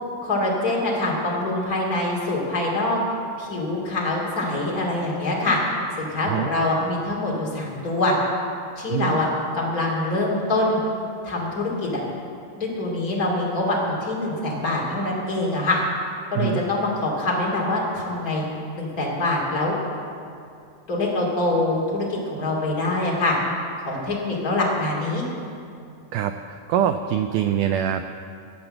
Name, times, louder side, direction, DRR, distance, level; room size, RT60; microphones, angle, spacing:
voice 1, 0.2-3.0 3.4-5.6 6.0-8.1 8.8-9.3 9.5-10.8 11.2-12.0 12.6-15.8 16.3-18.4 18.8-19.8 20.9-23.3 23.9-25.2, left 2 dB, 25° left, -4 dB, 2.6 m, -24 dB
voice 2, 26.1-28.1, right 10 dB, 90° right, 8 dB, 1.8 m, -24 dB
14.0 x 8.7 x 7.7 m, 2.5 s
omnidirectional pair, 4.2 m